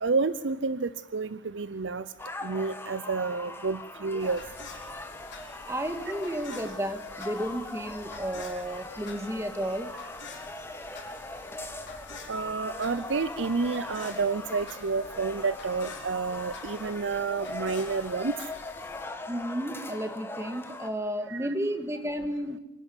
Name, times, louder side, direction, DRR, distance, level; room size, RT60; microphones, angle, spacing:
voice 1, 0.0-2.1 2.4-4.4 12.3-18.3 21.3-21.5, right 4 dB, 70° right, 15 dB, 0.6 m, -30 dB
sound 1, 2.2-20.9, left 2 dB, 10° left, 1.3 m, -41 dB
sound 2, 4.2-19.1, left 4 dB, 60° left, 4.9 m, -48 dB
voice 2, 5.7-10.0 19.3-22.6, equal, 15° right, 8 dB, 1.6 m, -32 dB
25.5 x 11.0 x 9.7 m, 1.0 s
head